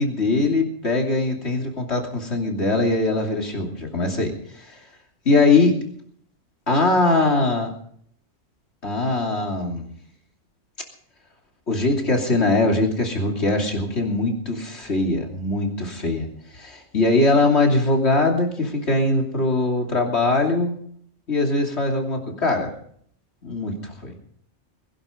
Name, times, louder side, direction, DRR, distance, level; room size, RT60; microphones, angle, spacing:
voice 1, 0.0-4.7 5.2-5.8 6.7-7.7 8.8-9.9 11.7-16.3 16.5-20.7 21.3-22.7 23.4-24.2, left 2 dB, 55° left, 1 dB, 3.2 m, -21 dB
21.5 x 11.0 x 5.2 m, 0.62 s
omnidirectional pair, 1.4 m